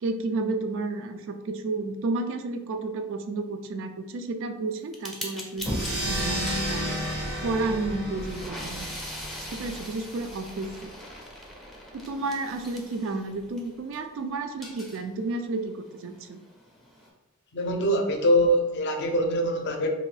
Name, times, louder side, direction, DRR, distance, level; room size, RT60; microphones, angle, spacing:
voice 1, 0.0-6.8 7.4-9.0 9.5-10.9 11.9-16.4, right 3 dB, 65° right, 7 dB, 0.3 m, -31 dB
sound 1, 4.9-14.0 14.4-17.1, equal, ahead, 0.5 m, -40 dB
sound 2, 5.6-10.7, equal, 80° right, 1.3 m, -32 dB
voice 2, 17.5-19.9, equal, 55° left, 3 dB, 0.5 m, -23 dB
2.8 x 2.6 x 3.2 m, 1.0 s
head